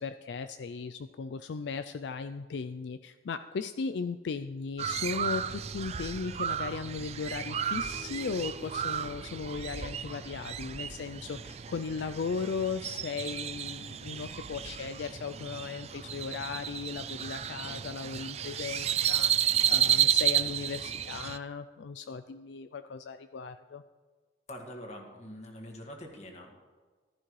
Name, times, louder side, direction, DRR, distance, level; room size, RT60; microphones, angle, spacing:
voice 1, 0.0-23.8, left 5 dB, 75° left, 10 dB, 0.4 m, -37 dB
Crow, 4.8-21.4, right 9 dB, 35° right, 0.4 m, -32 dB
sound 1, 7.7-12.5, right 2 dB, 55° right, 3.2 m, -54 dB
voice 2, 24.5-26.7, equal, 35° left, 2 dB, 1.8 m, -45 dB
15.0 x 12.5 x 3.2 m, 1.4 s
head